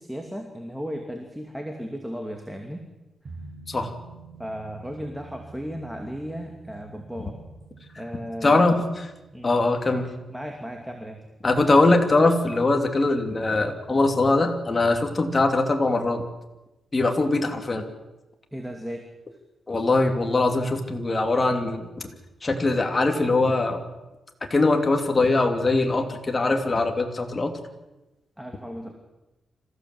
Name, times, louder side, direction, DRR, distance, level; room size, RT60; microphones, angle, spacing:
voice 1, 0.0-2.8 4.4-7.4 8.0-8.6 9.3-9.5 10.3-11.2 18.5-19.1 28.4-28.9, equal, 5° right, 3 dB, 2.5 m, -35 dB
sound 1, 3.2-12.4 12.7-12.8, right 3 dB, 55° right, 6.3 m, -47 dB
voice 2, 8.4-9.1 9.4-10.1 11.4-16.2 16.9-17.8 19.7-22.1 22.4-23.8 24.5-27.5, left 2 dB, 30° left, 4 dB, 3.0 m, -22 dB
26.0 x 16.0 x 7.9 m, 1.0 s
cardioid pair, 105°, 0 cm